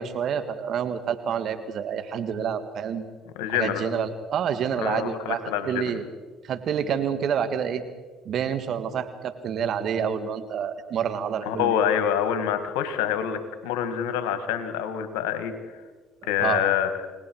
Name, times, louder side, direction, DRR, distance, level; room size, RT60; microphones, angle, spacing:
voice 1, 0.0-3.0 3.5-5.4 5.7-6.0 6.5-7.8 8.3-11.9 16.4-16.7, right 8 dB, 60° right, 9 dB, 1.9 m, -28 dB
voice 2, 3.4-3.8 4.8-5.9 11.4-15.5 16.3-16.9, left 9 dB, 80° left, 9 dB, 1.9 m, -26 dB
29.5 x 19.0 x 4.7 m, 1.3 s
hypercardioid pair, 65°, 0 cm